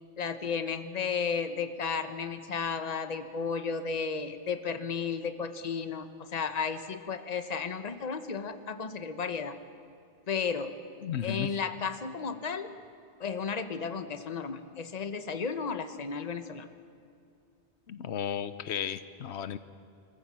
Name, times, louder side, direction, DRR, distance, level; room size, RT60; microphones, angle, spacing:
voice 1, 0.2-9.6 10.3-10.8 11.2-12.7 13.2-16.7, left 5 dB, 40° left, 10 dB, 1.0 m, -33 dB
voice 2, 11.0-11.5 17.9-19.6, left 9 dB, 85° left, 13 dB, 1.0 m, -34 dB
25.0 x 15.0 x 7.4 m, 2.4 s
omnidirectional pair, 1.1 m